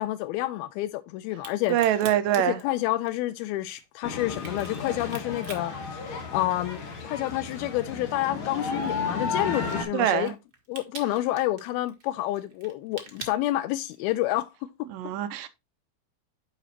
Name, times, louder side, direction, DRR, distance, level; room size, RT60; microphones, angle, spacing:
voice 1, 0.0-1.8 2.5-10.4 10.7-14.5, left 15 dB, 85° left, 2.4 m, -29 dB
Crack, 1.3-6.8 7.1-14.2, right 5 dB, 50° right, 1.1 m, -46 dB
voice 2, 1.7-2.6 9.9-10.3 14.9-15.5, right 11 dB, 80° right, 2.0 m, -24 dB
sound 1, 4.0-9.8, left 4 dB, 60° left, 1.4 m, -33 dB
11.0 x 4.9 x 2.9 m
omnidirectional pair, 4.4 m